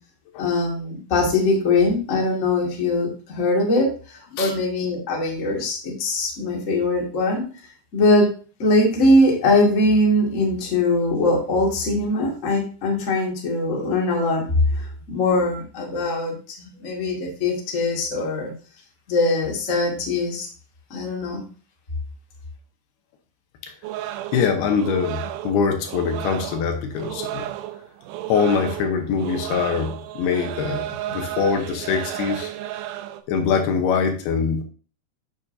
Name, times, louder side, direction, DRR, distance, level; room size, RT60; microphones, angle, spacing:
voice 1, 0.4-7.4 7.9-8.3 8.6-18.5 19.1-20.5 20.9-21.4, left 2 dB, 30° left, -2 dB, 1.5 m, -21 dB
sound 1, 23.8-33.2, right 13 dB, 85° right, 2.2 m, -33 dB
voice 2, 24.3-27.5 28.3-32.5 33.3-34.6, left 6 dB, 75° left, 5 dB, 2.9 m, -23 dB
8.8 x 7.2 x 2.7 m, 0.37 s
omnidirectional pair, 4.7 m